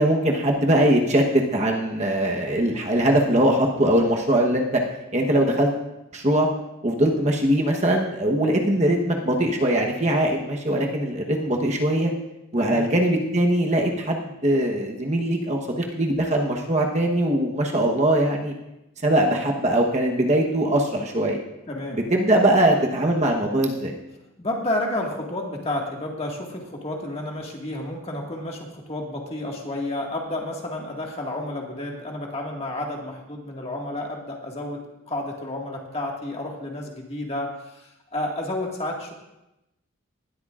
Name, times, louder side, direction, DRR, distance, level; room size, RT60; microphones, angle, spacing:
voice 1, 0.0-4.8 5.1-5.7 6.1-6.5 6.8-12.1 12.5-18.5 19.0-21.4 21.9-23.9, right 1 dB, 30° right, 1 dB, 1.1 m, -21 dB
voice 2, 12.5-12.9 21.7-22.0 24.4-34.8 35.1-39.1, left 1 dB, 30° left, 0 dB, 1.9 m, -31 dB
19.0 x 12.5 x 2.5 m, 0.91 s
head